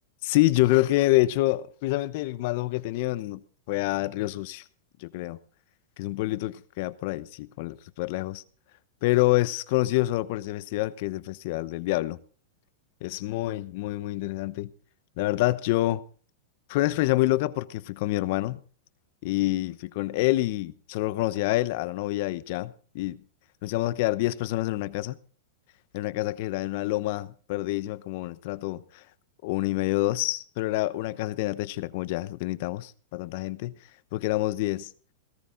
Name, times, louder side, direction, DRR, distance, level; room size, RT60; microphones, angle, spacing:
voice 1, 0.2-3.4 3.7-4.6 5.0-5.4 6.0-8.4 9.0-12.2 13.0-14.7 15.2-16.0 16.7-18.6 19.2-23.2 23.6-25.2 25.9-29.0 29.4-33.7 34.1-34.9, left 18 dB, 55° left, 0.9 m, -27 dB
17.5 x 14.0 x 3.9 m
hypercardioid pair, 135°, 0 cm